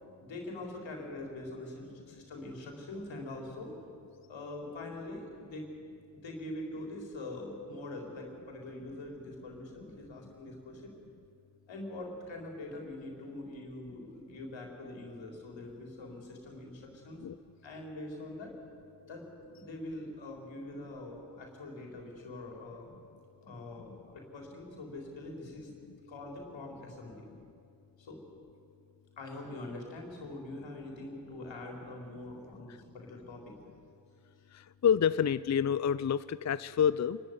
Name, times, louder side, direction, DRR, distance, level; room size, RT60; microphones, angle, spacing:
voice 1, 0.2-3.8 4.3-5.7 6.1-10.9 11.7-17.2 17.6-18.5 19.1-19.3 19.5-22.9 23.4-25.7 26.1-27.3 28.0-28.2 29.2-33.6, left 2 dB, 85° left, 1 dB, 4.2 m, -43 dB
voice 2, 34.5-37.2, left 8 dB, 40° left, 16 dB, 0.5 m, -28 dB
26.5 x 12.5 x 9.5 m, 2.5 s
cardioid pair, 40°, 44 cm